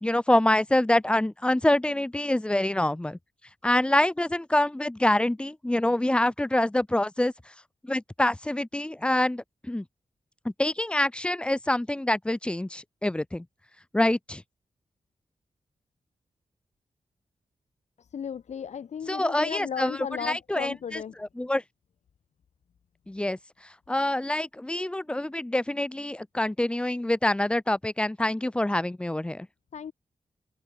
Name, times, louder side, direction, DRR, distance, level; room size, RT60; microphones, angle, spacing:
voice 1, 0.0-3.2 3.6-7.3 7.8-9.8 10.4-13.4 13.9-14.4 19.1-21.0 21.4-21.6 23.1-23.4 23.9-29.5, left 1 dB, 10° left, 0.8 m, -26 dB
voice 2, 18.1-21.2 29.7-29.9, left 7 dB, 80° left, 1.7 m, -35 dB
open air
wide cardioid pair, 165°, 12 cm